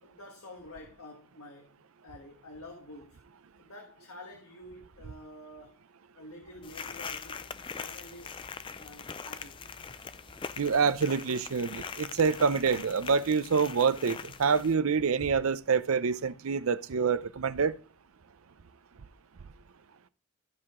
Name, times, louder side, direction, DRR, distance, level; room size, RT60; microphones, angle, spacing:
voice 1, 0.0-1.8 2.0-3.2 3.6-5.8 6.1-7.4 7.7-8.4 8.7-10.0, left 1 dB, 80° left, 1.5 m, -49 dB
sound 1, 6.6-14.7, left 6 dB, 25° left, 0.3 m, -42 dB
voice 2, 10.6-17.8, right 5 dB, 75° right, 0.5 m, -26 dB
14.0 x 4.8 x 3.6 m
head